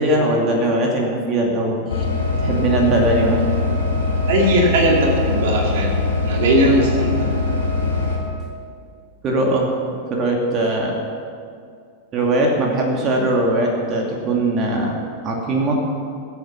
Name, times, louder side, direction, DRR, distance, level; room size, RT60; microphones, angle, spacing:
voice 1, 0.0-2.0 2.4-3.4 9.2-9.7 10.1-10.9 12.1-14.9 15.2-15.8, right 2 dB, 30° right, 0 dB, 2.4 m, -20 dB
sound 1, 1.9-8.2, left 3 dB, 65° left, 2.4 m, -22 dB
voice 2, 4.3-7.3, right 1 dB, 55° right, -1 dB, 2.4 m, -18 dB
21.0 x 8.4 x 5.9 m, 2.3 s
figure-of-eight pair, 90°, 0 cm